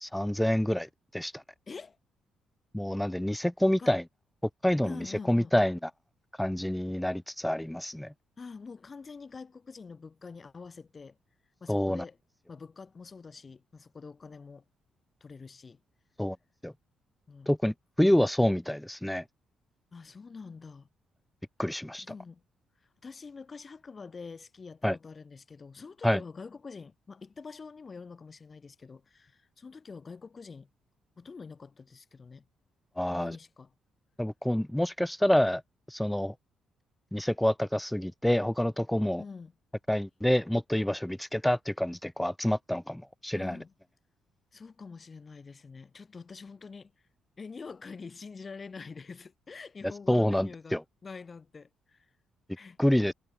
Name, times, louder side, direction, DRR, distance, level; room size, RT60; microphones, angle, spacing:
voice 1, 0.0-0.9 1.1-1.4 2.7-4.0 4.6-5.8 6.4-8.1 11.7-12.0 16.2-16.4 16.6-16.7 17.5-19.2 21.6-22.0 24.8-25.0 26.0-26.2 33.0-33.3 34.2-35.6 35.9-36.3 37.1-39.2 39.9-43.6 50.1-50.8 52.8-53.1, left 1 dB, 5° left, 0.6 m, -27 dB
voice 2, 1.7-2.0 3.8-4.0 4.8-5.6 8.4-11.2 11.6-12.2 12.5-14.6 15.2-15.8 17.3-17.5 19.9-20.9 22.0-22.4 23.0-30.7 31.2-32.4 33.1-33.7 39.2-39.5 43.3-43.7 44.5-46.9 47.4-52.1 52.6-52.8, left 4 dB, 35° left, 2.3 m, -46 dB
cardioid pair, 90°, 0 cm